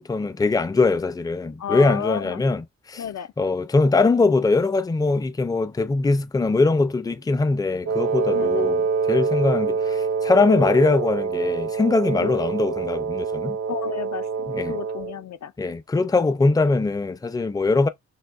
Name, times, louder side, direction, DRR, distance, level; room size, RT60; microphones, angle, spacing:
voice 1, 0.0-3.0 3.4-13.6 14.5-14.7 15.6-17.9, left 3 dB, 15° left, 0.4 m, -21 dB
voice 2, 1.6-2.4 3.0-3.3 8.3-8.7 12.2-12.3 13.7-15.5, left 9 dB, 70° left, 0.5 m, -32 dB
Wind instrument woodwind instrument, 7.9-15.2, right 5 dB, 60° right, 0.5 m, -25 dB
6.3 x 2.5 x 2.4 m
wide cardioid pair, 95°, 29 cm